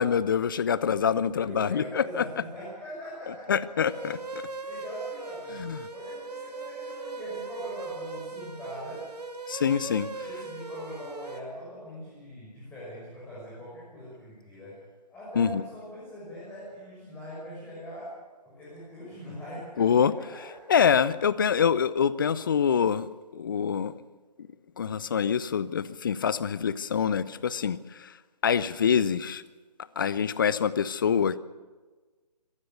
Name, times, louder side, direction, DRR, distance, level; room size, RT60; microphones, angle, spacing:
voice 1, 0.0-2.2 3.5-4.2 5.6-5.9 9.5-10.1 15.4-15.6 19.8-20.1 20.7-23.9 24.8-28.1 28.4-29.4 30.0-31.4, left 7 dB, 30° left, 18 dB, 0.7 m, -25 dB
voice 2, 1.3-4.0 4.7-9.1 10.2-14.8 15.1-18.1 18.4-19.9 20.1-20.6, equal, 5° left, -8 dB, 6.4 m, -42 dB
sound 1, 3.8-11.4, right 4 dB, 70° right, 2.5 m, -39 dB
25.5 x 18.0 x 7.0 m, 1.3 s
figure-of-eight pair, 150°, 21 cm